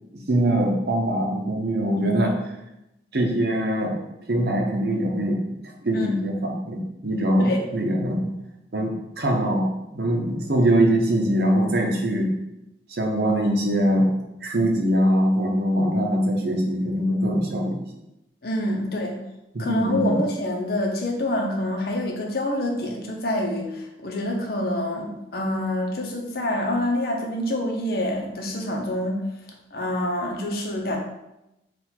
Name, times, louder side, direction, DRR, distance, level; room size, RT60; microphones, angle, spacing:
voice 1, 0.3-2.4 3.1-4.0 4.3-8.3 8.7-12.3 12.9-14.1 14.4-17.8 19.5-20.2, right 1 dB, 60° right, 1 dB, 0.8 m, -22 dB
voice 2, 18.4-19.2 19.6-29.2 29.7-31.0, left 1 dB, 55° left, 1 dB, 0.7 m, -26 dB
4.0 x 2.5 x 4.3 m, 0.90 s
head